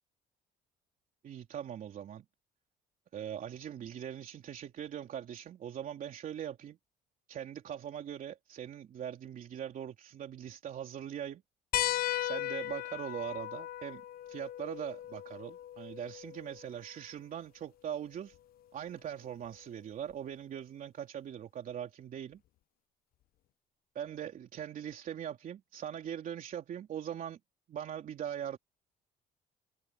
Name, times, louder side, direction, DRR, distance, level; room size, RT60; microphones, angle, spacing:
voice 1, 1.2-2.3 3.1-6.8 7.3-11.4 12.2-18.4 18.7-22.4 23.9-27.4 27.7-28.6, right 9 dB, 55° right, 3.3 m, -41 dB
sound 1, 11.7-16.8 18.3-18.4 20.1-20.2, left 13 dB, 60° left, 0.7 m, -37 dB
cardioid pair, 110°, 17 cm